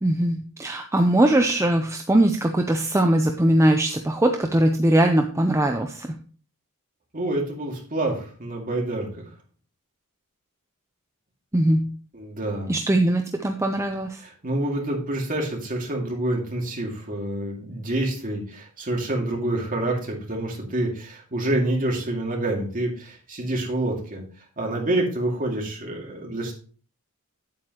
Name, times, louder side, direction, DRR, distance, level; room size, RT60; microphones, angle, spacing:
voice 1, 0.0-6.2 11.5-11.9 12.7-14.2, right 1 dB, 15° right, 4 dB, 0.6 m, -21 dB
voice 2, 7.1-9.2 12.1-12.7 14.2-24.2 24.6-26.5, right 1 dB, 40° right, -1 dB, 2.3 m, -27 dB
8.6 x 8.5 x 3.0 m, 0.42 s
head